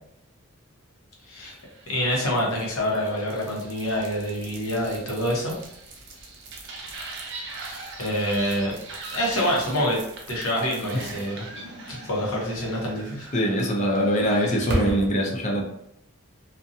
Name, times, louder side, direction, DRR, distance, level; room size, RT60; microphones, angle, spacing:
voice 1, 1.3-1.6 1.9-5.5 7.3-8.7 9.1-10.0 10.3-11.4 11.9-13.3, equal, 85° left, -2 dB, 0.8 m, -26 dB
sound 1, 1.5-15.1, right 2 dB, 60° right, 0.5 m, -38 dB
voice 2, 13.3-15.6, equal, 35° left, 0 dB, 0.5 m, -23 dB
2.6 x 2.1 x 2.6 m, 0.75 s
head